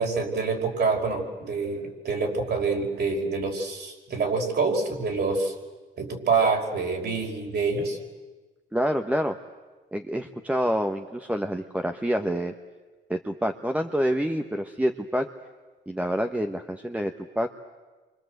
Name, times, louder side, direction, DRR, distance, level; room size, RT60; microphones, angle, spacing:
voice 1, 0.0-5.5 6.0-8.0, right 4 dB, 55° right, 2 dB, 5.4 m, -26 dB
voice 2, 8.7-9.4 9.9-12.5 13.1-15.3 15.9-17.5, equal, 5° right, 5 dB, 1.3 m, -27 dB
28.5 x 25.5 x 8.0 m, 1.3 s
cardioid pair, 90°, 20 cm